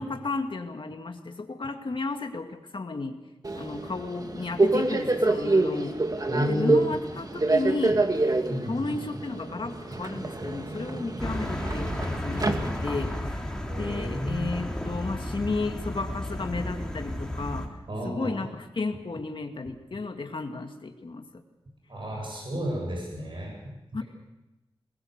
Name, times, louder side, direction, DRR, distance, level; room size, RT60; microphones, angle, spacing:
voice 1, 0.0-3.2 3.5-6.0 6.5-8.0 8.6-17.7 18.0-21.4 23.9-24.0, left 3 dB, 65° left, 5 dB, 2.1 m, -33 dB
Subway metro underground, 3.4-13.2, right 2 dB, 40° right, 2.1 m, -27 dB
voice 2, 6.3-6.8 8.5-8.8 13.7-14.5 17.9-18.3 21.9-24.0, equal, 65° right, -1 dB, 7.9 m, -31 dB
sound 1, 11.2-17.7, left 1 dB, 5° left, 3.7 m, -33 dB
21.0 x 21.0 x 6.6 m, 1.0 s
wide cardioid pair, 60°, 9 cm